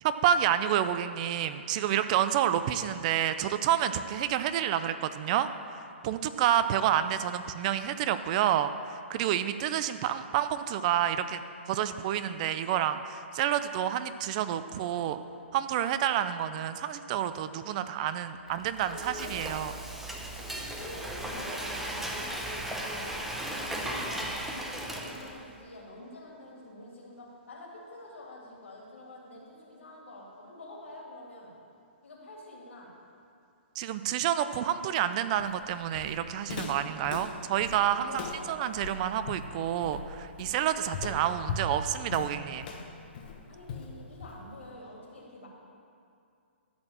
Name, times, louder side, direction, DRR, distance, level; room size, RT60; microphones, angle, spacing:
voice 1, 0.0-11.4 11.7-15.2 15.5-19.7 33.8-42.7, right 10 dB, 35° right, 11 dB, 0.4 m, -29 dB
Frying (food), 18.5-25.5, right 1 dB, 5° right, 0.8 m, -36 dB
voice 2, 18.9-19.7 20.3-23.1 23.5-31.5 32.0-32.9 37.7-38.6 43.5-45.5, left 2 dB, 80° left, -3 dB, 2.8 m, -46 dB
Walk footsteps, 35.4-44.6, left 4 dB, 45° left, 1.2 m, -39 dB
13.0 x 4.4 x 7.4 m, 2.5 s
hypercardioid pair, 140°, 7 cm